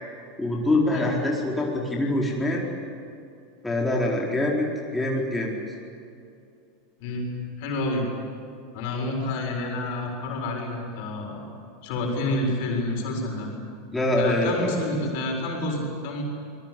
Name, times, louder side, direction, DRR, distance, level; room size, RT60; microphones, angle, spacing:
voice 1, 0.4-2.6 3.6-5.5 13.9-14.7, left 1 dB, 10° left, -3 dB, 4.5 m, -24 dB
voice 2, 7.0-7.3 7.6-8.1 8.7-11.5 11.8-13.5 14.1-16.2, left 2 dB, 55° left, 1 dB, 7.1 m, -29 dB
27.0 x 21.5 x 8.6 m, 2.5 s
figure-of-eight pair, 85°, 0 cm